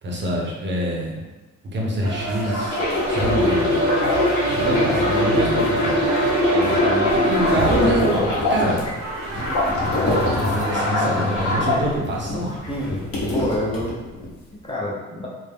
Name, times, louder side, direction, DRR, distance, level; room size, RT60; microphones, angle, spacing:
voice 1, 0.0-1.3 1.7-2.8 3.1-3.9 4.5-6.0 6.8-8.9 10.0-12.5 13.2-13.3, right 1 dB, 40° right, -2 dB, 0.6 m, -25 dB
sound 1, 2.0-11.9, right 4 dB, 75° right, 0.8 m, -28 dB
sound 2, 2.4-8.9 9.3-11.8 12.4-12.7, left 2 dB, 65° left, 1.1 m, -22 dB
voice 2, 4.6-5.0 6.5-7.2 10.8-11.8 12.7-13.0 13.3-15.3, left 1 dB, 20° left, -5 dB, 0.5 m, -29 dB
sound 3, 7.1-11.0 11.3-14.4, left 1 dB, 50° left, 0.9 m, -28 dB
2.3 x 2.0 x 3.3 m, 1.2 s
cardioid pair, 90°, 30 cm